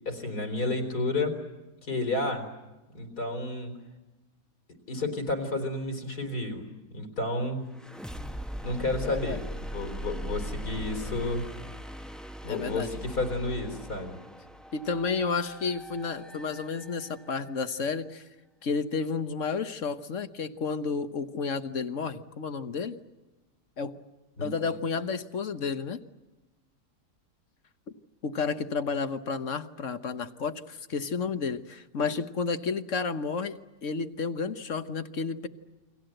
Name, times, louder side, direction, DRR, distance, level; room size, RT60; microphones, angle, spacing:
voice 1, 0.0-1.4 1.8-2.5 2.9-3.8 4.9-7.7 8.6-9.4 9.7-11.5 12.4-14.2 24.4-24.5, left 2 dB, 70° left, 6 dB, 4.7 m, -31 dB
sound 1, 7.7-17.5, equal, ahead, 0.9 m, -40 dB
voice 2, 9.0-9.4 12.4-12.9 14.7-18.3 18.6-23.0 23.8-24.0 24.4-26.0 28.2-35.5, left 5 dB, 50° left, 10 dB, 1.4 m, -31 dB
30.0 x 23.5 x 7.9 m, 1.1 s
omnidirectional pair, 1.7 m